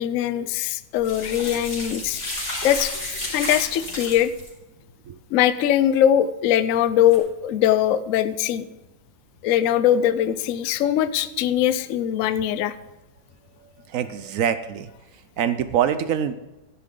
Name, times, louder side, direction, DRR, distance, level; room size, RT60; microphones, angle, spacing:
voice 1, 0.0-2.2 2.6-2.9 3.3-4.3 5.3-8.7 9.4-12.7, left 11 dB, 70° left, 14 dB, 0.7 m, -21 dB
sound 1, 1.0-4.5 7.0-7.2, left 1 dB, 35° left, 3.8 m, -32 dB
voice 2, 13.8-14.9 15.4-16.3, right 9 dB, 70° right, 12 dB, 0.8 m, -24 dB
13.5 x 10.0 x 3.8 m, 1.1 s
omnidirectional pair, 2.0 m